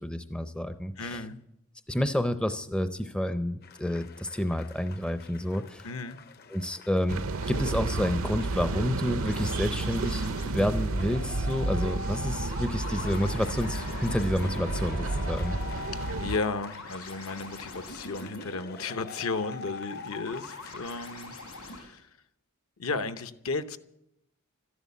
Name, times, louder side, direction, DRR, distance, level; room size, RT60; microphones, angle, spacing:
voice 1, 0.0-1.2 1.9-5.9 6.5-10.3 10.5-15.6, equal, 5° left, 10 dB, 0.5 m, -29 dB
voice 2, 1.0-1.4 5.8-6.2 16.2-22.1 22.8-23.8, left 4 dB, 70° left, 10 dB, 0.8 m, -34 dB
sound 1, 3.6-20.9, left 6 dB, 45° left, 0.6 m, -47 dB
sound 2, 7.1-16.4, right 3 dB, 70° right, 0.6 m, -31 dB
sound 3, 9.2-21.8, left 2 dB, 85° left, 6.7 m, -42 dB
13.0 x 11.0 x 8.4 m, 0.82 s
head